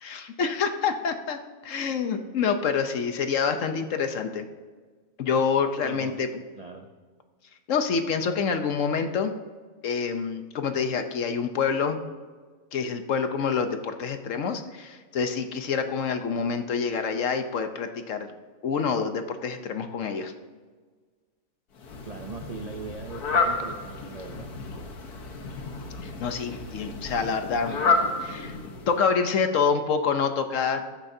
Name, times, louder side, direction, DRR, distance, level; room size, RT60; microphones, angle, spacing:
voice 1, 0.0-4.5 5.2-6.3 7.7-9.3 9.8-12.0 12.7-18.3 18.6-20.3 26.0-27.8 28.2-28.6 28.9-30.9, left 6 dB, 60° left, 8 dB, 1.1 m, -27 dB
voice 2, 5.8-6.1 6.6-6.9 22.0-24.6, right 4 dB, 55° right, 4 dB, 0.4 m, -40 dB
Fowl, 21.8-29.1, left 3 dB, 85° left, 1.7 m, -30 dB
15.0 x 10.0 x 2.7 m, 1.5 s
omnidirectional pair, 1.6 m